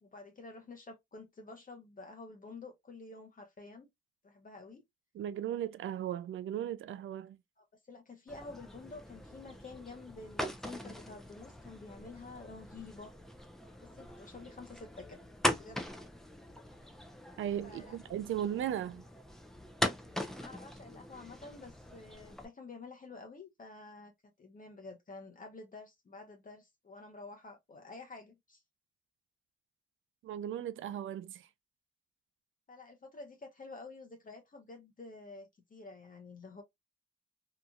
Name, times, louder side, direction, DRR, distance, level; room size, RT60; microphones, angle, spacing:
voice 1, 0.0-3.9 4.2-4.8 7.6-13.1 13.8-15.2 15.6-15.9 17.6-18.0 20.4-28.6 32.7-36.6, left 3 dB, 40° left, 0.8 m, -50 dB
voice 2, 5.1-7.4 17.4-19.0 30.2-31.5, right 10 dB, 70° right, 0.4 m, -37 dB
sound 1, 8.3-22.5, equal, ahead, 0.6 m, -41 dB
2.9 x 2.4 x 2.3 m
supercardioid pair, 50°, 21 cm